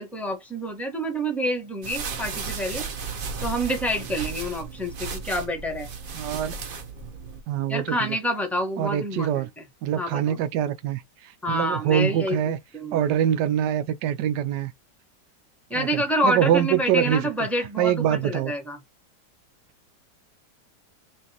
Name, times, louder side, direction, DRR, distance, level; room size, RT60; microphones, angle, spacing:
voice 1, 0.0-2.9 3.4-5.9 7.7-9.5 10.0-10.4 11.4-12.4 12.7-13.1 15.7-18.8, equal, ahead, 0.9 m, -28 dB
sound 1, 1.8-7.4, right 5 dB, 50° right, 0.6 m, -34 dB
voice 2, 6.2-6.6 7.5-8.2 8.8-9.5 9.8-12.6 12.9-14.7 15.7-17.3 17.8-18.5, right 10 dB, 80° right, 1.2 m, -24 dB
6.1 x 2.6 x 2.9 m
omnidirectional pair, 1.9 m